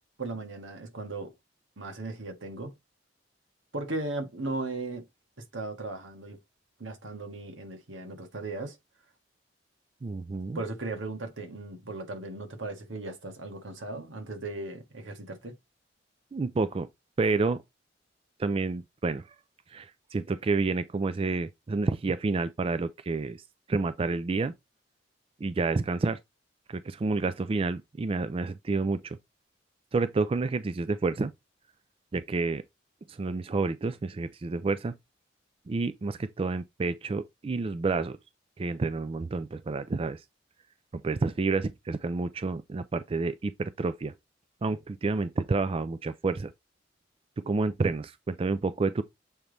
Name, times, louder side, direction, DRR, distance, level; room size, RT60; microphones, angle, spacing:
voice 1, 0.2-1.3 1.8-2.7 3.7-5.0 5.5-6.4 6.8-8.8 10.5-15.5, right 2 dB, 90° right, 1.5 m, -37 dB
voice 2, 10.0-10.6 16.3-16.9 17.2-17.6 18.4-19.2 19.7-23.4 23.7-24.5 25.4-26.2 26.7-29.2 29.9-31.3 32.1-32.6 33.1-34.9 35.7-38.2 38.6-40.2 40.9-44.1 44.6-46.5 47.5-49.0, right 3 dB, 30° right, 0.3 m, -29 dB
7.2 x 3.3 x 3.9 m
head